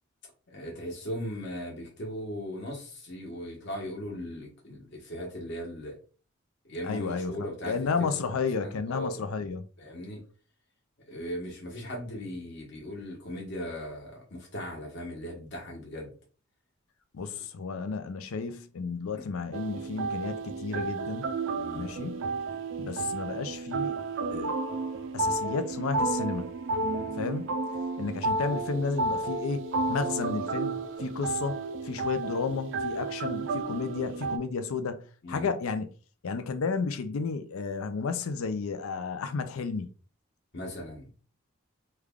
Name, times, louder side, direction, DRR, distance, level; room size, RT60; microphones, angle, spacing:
voice 1, 0.5-6.0 6.6-9.3 9.8-10.2 11.1-16.1 19.2-19.3 21.6-21.9 26.8-27.1 35.2-35.5 40.5-41.1, equal, 55° left, 1.1 m, -38 dB
voice 2, 6.8-9.6 17.1-21.3 21.7-22.2 22.8-24.0 24.3-24.6 25.1-26.5 27.2-27.4 28.0-31.6 31.8-35.9 36.2-39.9, left 4 dB, 90° left, 0.5 m, -32 dB
sound 1, 19.5-34.4, right 3 dB, 65° right, 0.4 m, -32 dB
3.3 x 2.3 x 3.5 m
head